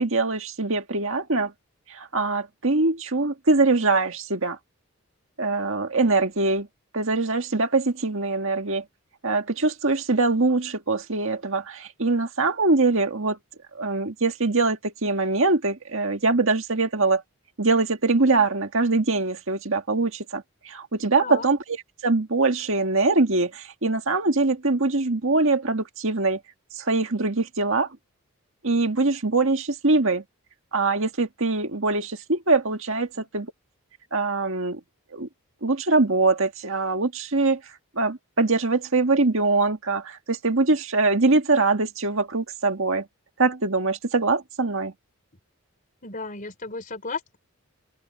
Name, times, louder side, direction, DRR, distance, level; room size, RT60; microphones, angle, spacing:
voice 1, 0.0-1.5 1.9-4.6 5.4-6.7 6.9-8.8 9.2-13.4 13.7-17.2 17.6-21.8 22.0-26.4 26.7-27.9 28.6-30.2 30.7-33.5 34.1-34.8 35.1-35.3 35.6-37.6 38.0-43.1 43.4-44.9, right 3 dB, 60° right, 1.9 m, -23 dB
voice 2, 46.0-47.4, left 4 dB, 35° left, 4.0 m, -34 dB
open air
head